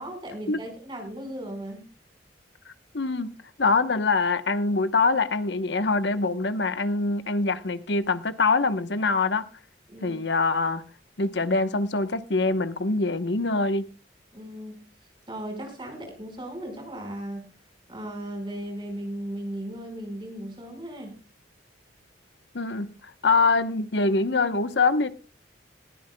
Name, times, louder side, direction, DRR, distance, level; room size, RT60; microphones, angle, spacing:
voice 1, 0.0-1.9 9.9-10.2 14.3-14.8 15.3-17.5 17.9-21.2, right 1 dB, 25° right, 4.8 m, -36 dB
voice 2, 2.9-3.3 3.6-9.5 10.0-10.8 11.2-13.9 22.5-22.9 23.2-25.1, left 3 dB, 65° left, 1.0 m, -24 dB
20.5 x 13.5 x 2.2 m
head